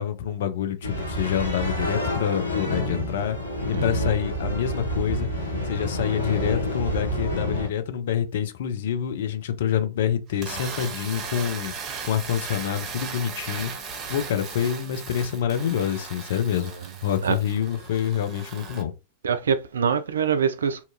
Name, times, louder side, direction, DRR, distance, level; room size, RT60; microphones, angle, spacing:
voice 1, 0.0-3.4 3.7-11.7 12.0-13.7 14.1-16.7 17.0-18.9, left 9 dB, 60° left, 0.4 m, -27 dB
sound 1, 0.8-7.7, equal, 85° left, 0.8 m, -28 dB
voice 2, 3.7-4.1 17.2-17.4 19.2-20.8, right 7 dB, 70° right, 0.3 m, -24 dB
sound 2, 10.3-18.8, right 5 dB, 30° right, 0.6 m, -37 dB
2.7 x 2.3 x 2.6 m
figure-of-eight pair, 90°, 0 cm